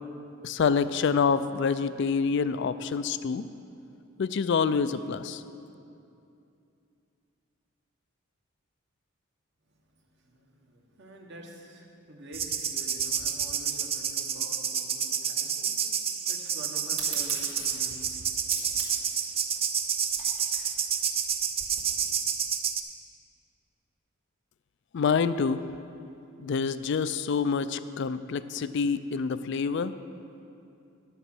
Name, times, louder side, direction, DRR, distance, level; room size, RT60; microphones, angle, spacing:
voice 1, 0.4-3.4 4.2-5.6 24.9-25.6 26.4-29.9, left 5 dB, 55° left, 13 dB, 0.3 m, -27 dB
voice 2, 9.7-18.2, right 1 dB, 55° right, 1 dB, 1.3 m, -48 dB
sound 1, 12.3-22.8, right 7 dB, 25° right, 0.4 m, -29 dB
sound 2, 16.9-22.0, right 5 dB, 75° right, 2.4 m, -40 dB
11.0 x 7.2 x 6.1 m, 2.6 s
head